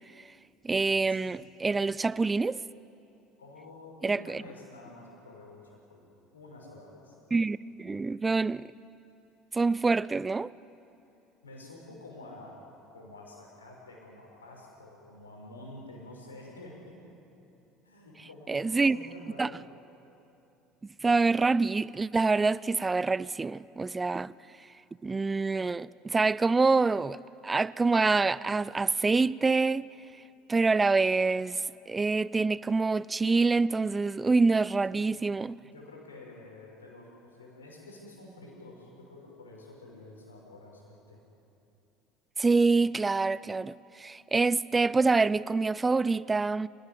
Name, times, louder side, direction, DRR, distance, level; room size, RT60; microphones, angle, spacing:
voice 1, 0.6-2.6 4.0-4.4 7.3-8.7 9.5-10.5 18.5-19.0 19.4-19.5 21.0-24.3 25.0-29.9 30.5-35.6 42.4-46.7, right 3 dB, 20° right, 0.5 m, -26 dB
voice 2, 3.4-7.2 11.4-12.6 12.9-16.9 17.8-19.7 34.9-35.3 35.6-41.2, left 2 dB, 85° left, 6.4 m, -49 dB
28.5 x 17.5 x 9.0 m
figure-of-eight pair, 65°, 0 cm